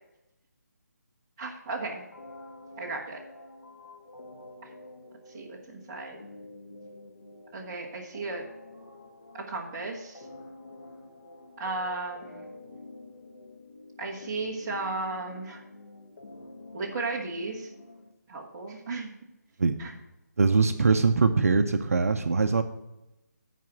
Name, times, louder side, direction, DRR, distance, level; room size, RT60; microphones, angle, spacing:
voice 1, 1.4-2.0 2.8-3.2 4.6-4.7 5.3-6.2 7.5-8.4 9.3-10.2 11.6-12.6 14.0-15.6 16.7-17.7 18.3-19.1 19.8-19.9, right 3 dB, 10° right, -4 dB, 0.9 m, -35 dB
sound 1, 2.1-18.1, left 2 dB, 85° left, 1.6 m, -48 dB
voice 2, 20.4-22.6, right 4 dB, 55° right, 7 dB, 0.6 m, -22 dB
9.3 x 4.9 x 7.2 m, 0.95 s
hypercardioid pair, 175°, 10 cm